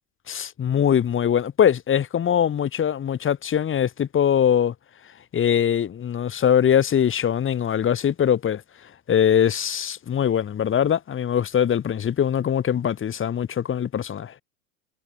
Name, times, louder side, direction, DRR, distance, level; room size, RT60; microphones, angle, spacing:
voice 1, 0.3-4.7 5.3-8.6 9.1-14.3, left 9 dB, 25° left, 3.9 m, -22 dB
hypercardioid pair, 90°, 45 cm